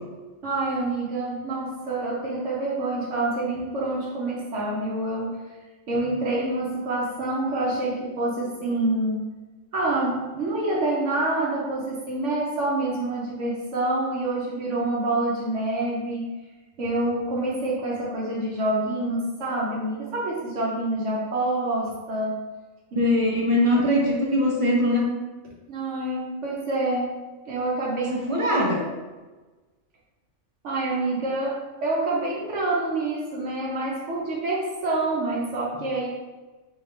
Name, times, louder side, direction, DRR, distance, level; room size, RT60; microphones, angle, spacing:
voice 1, 0.4-5.4 5.9-9.3 9.7-16.2 16.8-22.4 22.9-23.0 25.7-27.1 27.5-28.2 30.6-36.1, right 2 dB, 70° right, -4 dB, 1.1 m, -27 dB
voice 2, 23.0-25.0 28.1-28.8, left 1 dB, 30° right, -3 dB, 0.7 m, -21 dB
3.7 x 3.6 x 3.2 m, 1.2 s
omnidirectional pair, 1.3 m